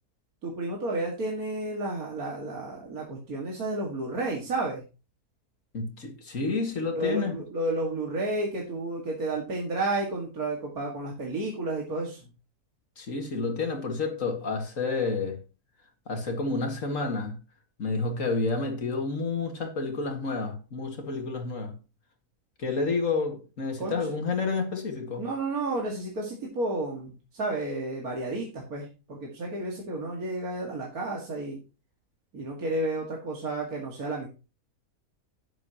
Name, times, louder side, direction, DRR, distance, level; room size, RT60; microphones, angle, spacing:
voice 1, 0.4-4.8 6.9-12.3 23.8-24.1 25.2-31.6 32.3-34.3, right 2 dB, 70° right, 2.5 m, -31 dB
voice 2, 5.7-7.4 13.0-15.4 16.1-17.4 17.8-21.7 22.6-25.3, left 3 dB, 55° left, 2.4 m, -30 dB
12.0 x 9.7 x 3.0 m
omnidirectional pair, 1.6 m